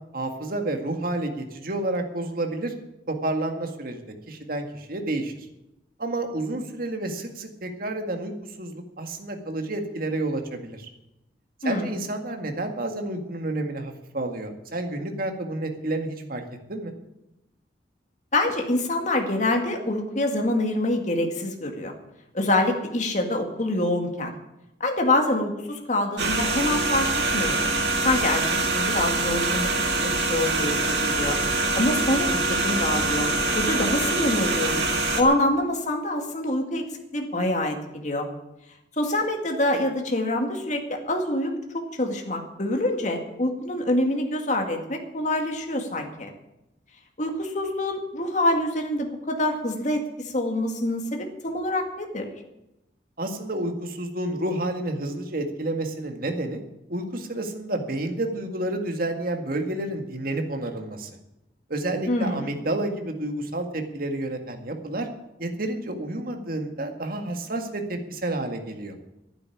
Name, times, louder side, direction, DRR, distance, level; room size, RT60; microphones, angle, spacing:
voice 1, 0.1-2.7 3.1-5.5 6.0-10.9 11.6-16.4 16.7-16.9 53.2-56.6 56.9-61.1 61.7-65.1 65.4-68.9, right 2 dB, 55° right, 5 dB, 2.0 m, -30 dB
voice 2, 18.3-21.9 22.3-24.3 24.8-27.7 28.0-31.4 31.7-33.3 33.6-34.9 35.2-36.9 37.1-38.3 38.9-46.3 47.2-52.3 62.1-62.6, left 1 dB, 45° left, 3 dB, 2.1 m, -26 dB
sound 1, 26.2-35.2, right 2 dB, 75° right, 1.9 m, -24 dB
11.5 x 9.6 x 9.9 m, 0.91 s
head